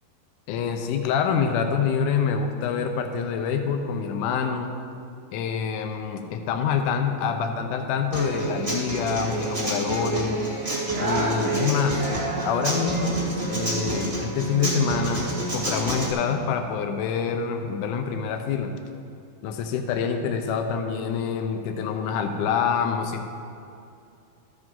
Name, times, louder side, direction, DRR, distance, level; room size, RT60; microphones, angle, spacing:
voice 1, 0.5-4.7 5.3-10.4 11.0-12.1 12.4-18.7 19.4-23.3, left 6 dB, 90° left, 5 dB, 1.8 m, -26 dB
Human voice / Acoustic guitar, 8.1-16.1, right 2 dB, 20° right, 0.8 m, -28 dB
13.5 x 7.9 x 3.7 m, 2.5 s
omnidirectional pair, 4.3 m